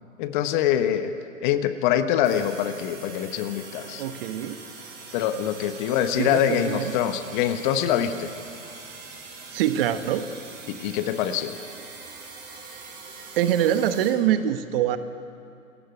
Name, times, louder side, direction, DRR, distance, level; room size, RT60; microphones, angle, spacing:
voice 1, 0.2-1.1 1.4-4.0 5.1-8.3 10.7-11.6, left 10 dB, 35° left, 10 dB, 1.2 m, -24 dB
sound 1, 2.2-14.1, right 4 dB, 25° right, 5.4 m, -43 dB
voice 2, 4.0-4.6 6.2-6.9 9.5-10.3 13.4-15.0, right 10 dB, 45° right, 11 dB, 1.2 m, -24 dB
27.0 x 14.5 x 8.3 m, 2.7 s
hypercardioid pair, 125°, 40 cm